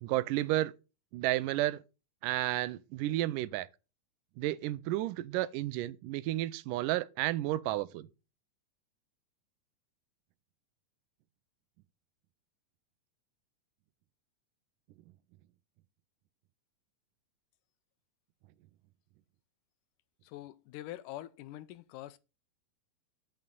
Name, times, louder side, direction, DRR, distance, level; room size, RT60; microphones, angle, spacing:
voice 1, 0.0-0.7 1.1-1.8 2.2-3.7 4.4-8.1, right 15 dB, 85° right, 2.2 m, -32 dB
voice 2, 20.2-22.2, left 14 dB, 85° left, 2.2 m, -45 dB
8.5 x 6.4 x 5.2 m
omnidirectional pair, 3.7 m